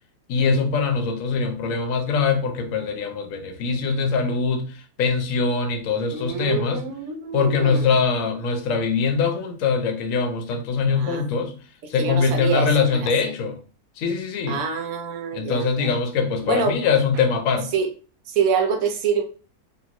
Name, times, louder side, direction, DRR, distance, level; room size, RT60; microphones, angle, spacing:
voice 1, 0.3-6.8 7.3-11.5 11.9-13.6 14.0-14.6 15.3-17.7, left 5 dB, 70° left, 0.9 m, -22 dB
voice 2, 6.1-7.9 10.9-11.3 12.0-13.3 14.5-16.0 16.4-16.7 17.7-17.9 18.3-19.2, right 6 dB, 75° right, 1.0 m, -26 dB
2.9 x 2.6 x 2.4 m
omnidirectional pair, 1.6 m